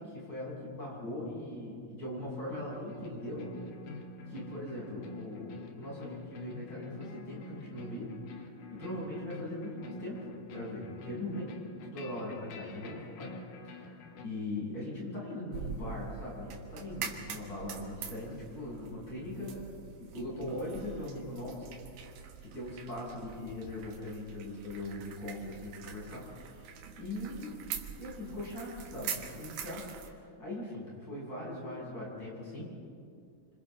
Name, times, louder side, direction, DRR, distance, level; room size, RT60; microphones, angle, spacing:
voice 1, 0.0-3.5 4.3-8.4 8.7-11.6 11.8-13.4 13.6-21.7 22.4-26.3 27.0-27.5 28.0-32.7, left 1 dB, 30° left, -5 dB, 7.9 m, -40 dB
sound 1, 2.5-14.3, left 2 dB, 70° left, 3.0 m, -47 dB
sound 2, 15.5-30.1, right 7 dB, 80° right, 3.1 m, -44 dB
30.0 x 26.0 x 3.9 m, 2.3 s
omnidirectional pair, 4.0 m